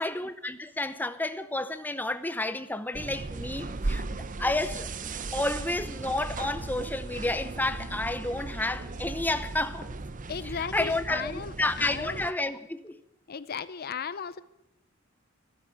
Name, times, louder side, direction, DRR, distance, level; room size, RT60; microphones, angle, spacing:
voice 1, 0.0-9.9 10.7-13.0, left 2 dB, 10° left, 0.7 m, -31 dB
sound 1, 2.9-12.3, right 3 dB, 40° right, 0.7 m, -37 dB
voice 2, 10.3-12.2 13.3-14.4, left 6 dB, 50° left, 0.6 m, -36 dB
13.5 x 12.5 x 8.5 m
head